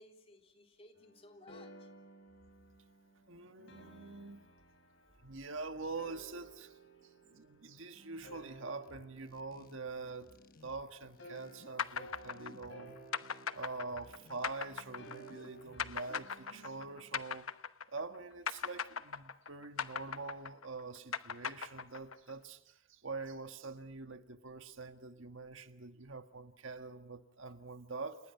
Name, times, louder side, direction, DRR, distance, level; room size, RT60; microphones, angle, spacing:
voice 1, 0.0-1.9 7.0-7.2, left 1 dB, 30° left, 3 dB, 3.4 m, -59 dB
sound 1, 1.0-10.6 11.2-17.2, right 2 dB, 60° left, 6.2 m, -56 dB
voice 2, 3.3-4.4 5.2-6.8 7.3-10.3 10.6-12.9 13.5-17.5 17.9-28.2, right 3 dB, 70° right, 8 dB, 1.6 m, -45 dB
sound 2, 8.8-16.2, left 1 dB, 45° left, 1.2 m, -60 dB
sound 3, 11.8-18.2 18.5-22.3, left 6 dB, 90° left, 1.0 m, -39 dB
29.5 x 29.0 x 5.8 m, 0.74 s
head